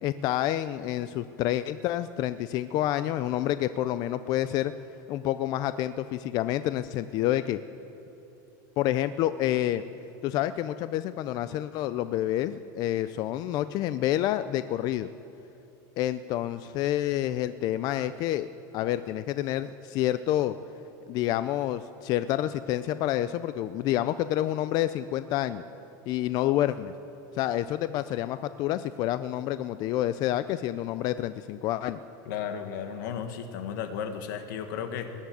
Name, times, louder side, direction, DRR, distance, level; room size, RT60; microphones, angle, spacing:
voice 1, 0.0-4.7 5.1-7.6 8.8-9.8 10.2-15.1 16.0-18.5 18.7-20.6 21.1-25.6 26.1-26.9 27.3-32.0, left 13 dB, 40° left, 13 dB, 0.4 m, -28 dB
voice 2, 32.2-35.1, left 7 dB, 80° left, 7 dB, 1.5 m, -34 dB
19.5 x 7.3 x 9.2 m, 3.0 s
supercardioid pair, 155°, 10 cm